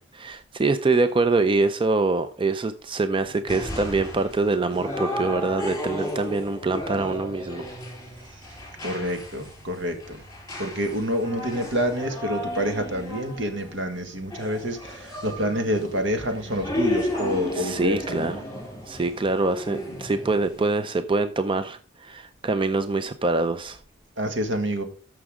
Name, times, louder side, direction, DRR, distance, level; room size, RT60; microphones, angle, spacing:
voice 1, 0.2-7.7 17.5-18.4 18.9-23.8, right 3 dB, 25° right, 0.5 m, -24 dB
sound 1, 3.2-20.7, left 1 dB, 20° left, 4.2 m, -34 dB
voice 2, 8.8-10.2 10.6-18.3 24.2-24.8, equal, 70° right, 1.8 m, -27 dB
13.5 x 6.0 x 3.7 m
head